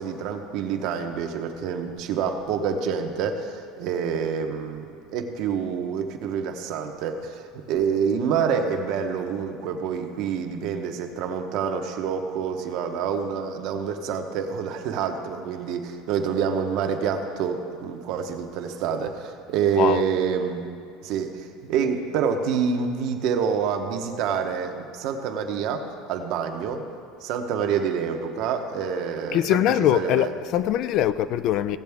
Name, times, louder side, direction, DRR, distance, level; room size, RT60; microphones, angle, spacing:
voice 1, 0.0-20.6 21.0-26.9 27.2-29.6 29.9-30.3, right 6 dB, 60° right, 1.0 m, -27 dB
voice 2, 29.3-31.8, left 11 dB, 50° left, 0.4 m, -22 dB
17.0 x 7.6 x 3.5 m
supercardioid pair, 140°, 0 cm